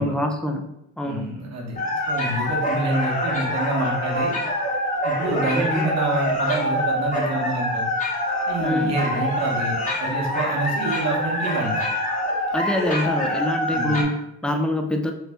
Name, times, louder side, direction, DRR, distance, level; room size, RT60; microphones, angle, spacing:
voice 1, 0.0-1.3 5.5-5.9 8.6-9.0 12.5-15.1, left 1 dB, 5° left, 3 dB, 0.4 m, -25 dB
voice 2, 1.0-4.3 5.0-7.8 8.5-11.9 13.7-14.0, right 2 dB, 60° right, -2 dB, 1.0 m, -27 dB
sound 1, 1.8-14.0, left 1 dB, 25° left, 1.1 m, -25 dB
3.1 x 2.7 x 3.4 m, 0.83 s
cardioid pair, 90°, 30 cm